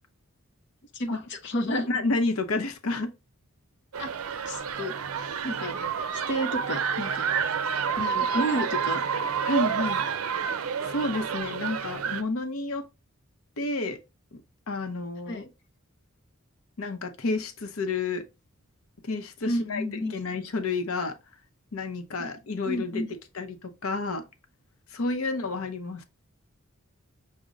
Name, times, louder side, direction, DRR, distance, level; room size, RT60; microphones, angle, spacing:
voice 1, 0.9-1.9 4.0-4.1 4.5-4.9 5.4-5.8 6.1-7.3 8.0-9.0 15.3-15.5 19.4-20.1 22.2-22.3 22.6-23.1, equal, 55° left, 0.8 m, -31 dB
voice 2, 1.7-3.1 9.4-10.0 10.8-12.9 13.6-14.0 14.3-14.4 14.7-15.4 16.8-18.3 19.0-19.8 20.1-21.2 21.7-23.0 23.3-24.3 24.9-26.0, left 3 dB, 85° left, 0.7 m, -30 dB
sound 1, 3.9-12.2, right 6 dB, 85° right, 0.5 m, -29 dB
6.3 x 2.1 x 3.7 m
head